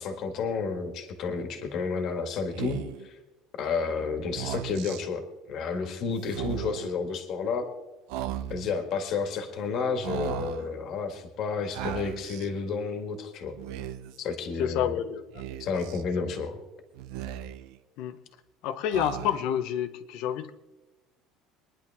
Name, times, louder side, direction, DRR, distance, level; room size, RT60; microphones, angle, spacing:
voice 1, 0.0-3.2 3.6-5.2 5.5-7.7 8.5-13.6 14.2-14.9 15.6-16.6, left 5 dB, 45° left, 6 dB, 1.9 m, -31 dB
Speech, 2.5-3.1 4.2-5.0 6.2-6.9 8.1-8.8 10.0-10.7 11.7-12.5 13.5-14.2 15.3-16.0 16.9-17.8 18.9-19.6, right 11 dB, 75° right, 0.9 m, -36 dB
voice 2, 14.6-15.4 16.1-16.3 18.0-18.2 18.6-20.5, left 10 dB, 60° left, 11 dB, 0.9 m, -29 dB
24.0 x 10.5 x 3.6 m, 1.1 s
cardioid pair, 160°, 0 cm